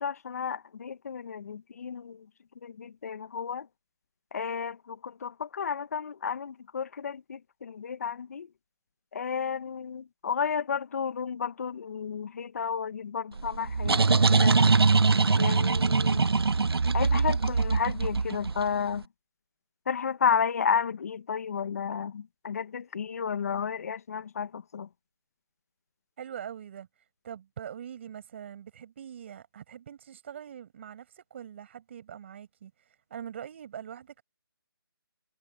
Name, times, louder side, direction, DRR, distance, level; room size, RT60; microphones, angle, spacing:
voice 1, 0.0-2.2 2.6-3.7 4.3-8.5 9.1-14.6 15.4-16.3 16.9-19.0 19.9-24.9, left 6 dB, 40° left, 1.2 m, -32 dB
sound 1, 13.4-18.9, right 4 dB, 80° right, 1.0 m, -23 dB
voice 2, 26.2-26.9 27.2-34.2, right 9 dB, 30° right, 5.4 m, -43 dB
hypercardioid pair, 170°, 13 cm